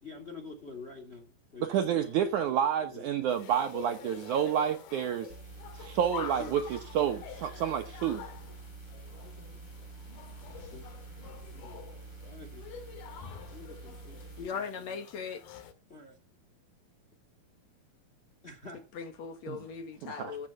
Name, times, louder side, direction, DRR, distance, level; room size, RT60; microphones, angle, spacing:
voice 1, 0.0-2.3 2.8-3.3 6.4-6.6 9.2-9.6 10.7-10.9 11.5-12.7 13.5-15.0 15.9-16.2 18.4-18.8, left 3 dB, 20° left, 1.9 m, -48 dB
voice 2, 1.6-5.3 5.7-8.2 19.5-19.6 20.0-20.4, right 9 dB, 70° right, 2.1 m, -29 dB
sound 1, 3.3-15.7, left 9 dB, 85° left, 3.7 m, -47 dB
sound 2, 5.3-14.5, right 4 dB, 40° right, 1.9 m, -47 dB
voice 3, 14.4-15.6 19.0-20.5, left 6 dB, 55° left, 2.3 m, -39 dB
15.0 x 5.6 x 8.9 m
omnidirectional pair, 4.2 m